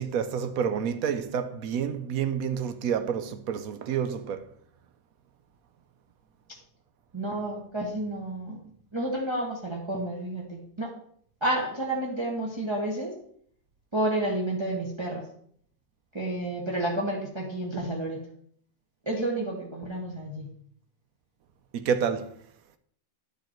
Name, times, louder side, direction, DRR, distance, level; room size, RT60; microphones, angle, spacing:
voice 1, 0.0-4.5 21.7-22.4, right 7 dB, 85° right, 1.2 m, -29 dB
voice 2, 7.1-8.6 8.9-10.9 11.4-13.1 13.9-15.2 16.1-18.2 19.0-20.5, right 1 dB, 20° right, 1.4 m, -30 dB
11.0 x 5.6 x 4.4 m
omnidirectional pair, 1.5 m